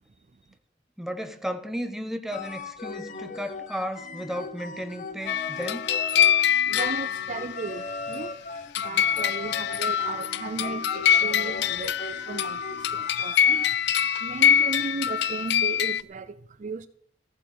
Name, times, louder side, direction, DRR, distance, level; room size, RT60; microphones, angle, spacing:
voice 1, 1.0-5.9, equal, ahead, 0.9 m, -34 dB
sound 1, 2.3-14.1, left 4 dB, 45° left, 1.0 m, -38 dB
sound 2, 5.3-7.7 8.8-16.0, left 9 dB, 65° left, 0.4 m, -24 dB
voice 2, 6.6-8.4 8.8-13.9 14.2-16.9, right 4 dB, 45° right, 0.5 m, -36 dB
15.0 x 8.0 x 6.4 m
head